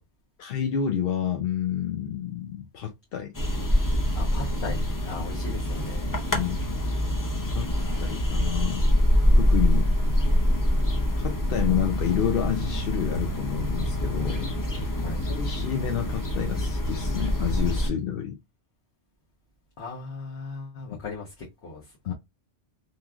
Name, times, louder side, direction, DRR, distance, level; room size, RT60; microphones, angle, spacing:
voice 1, 0.4-3.3 6.3-6.6 7.5-7.7 8.0-8.8 9.4-9.9 11.2-14.5 15.3-18.4 22.1-22.2, left 9 dB, 65° left, 0.7 m, -29 dB
sound 1, 3.3-17.9, equal, 25° left, 0.4 m, -25 dB
voice 2, 4.1-6.2 14.9-15.2 19.8-22.1, left 3 dB, 80° left, 1.3 m, -38 dB
3.1 x 2.5 x 2.3 m
omnidirectional pair, 1.1 m